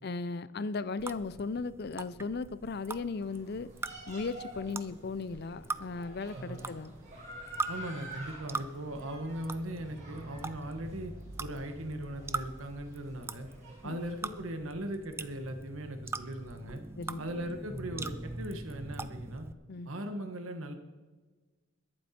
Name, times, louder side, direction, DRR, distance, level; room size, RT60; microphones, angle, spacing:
voice 1, 0.0-3.7 4.1-6.9 13.8-14.0 17.0-17.3 19.7-19.9, left 4 dB, 50° left, 17 dB, 0.5 m, -36 dB
sound 1, 1.0-19.5, right 3 dB, 10° right, 0.3 m, -42 dB
sound 2, 3.1-14.4, equal, 35° right, 4.3 m, -49 dB
voice 2, 6.3-6.7 7.7-11.1 11.4-13.5 13.8-16.8 17.2-19.5 19.8-20.7, right 1 dB, 75° right, 6 dB, 1.3 m, -39 dB
22.0 x 7.8 x 4.3 m, 1.3 s
head